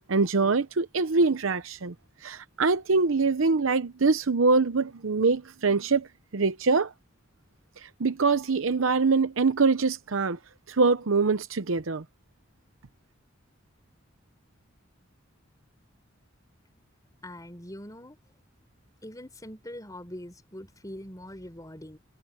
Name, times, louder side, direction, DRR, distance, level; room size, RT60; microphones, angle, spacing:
voice 1, 0.1-1.9 2.2-6.1 6.3-6.9 7.8-10.4 10.7-12.0, right 4 dB, 85° right, 0.8 m, -24 dB
voice 2, 17.2-18.2 19.0-22.0, left 1 dB, 20° left, 4.4 m, -42 dB
head